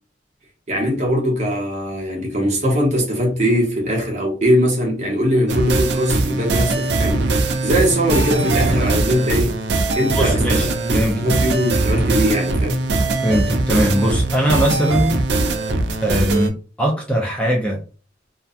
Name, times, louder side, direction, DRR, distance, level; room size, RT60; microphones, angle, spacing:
voice 1, 0.7-9.6 10.0-12.8, equal, 40° right, 0.8 m, -21 dB
sound 1, 5.5-16.5, right 2 dB, 65° right, 0.4 m, -20 dB
voice 2, 10.1-11.3 13.2-15.2 16.0-17.8, right 1 dB, 5° left, 0.4 m, -20 dB
2.6 x 2.2 x 2.3 m
head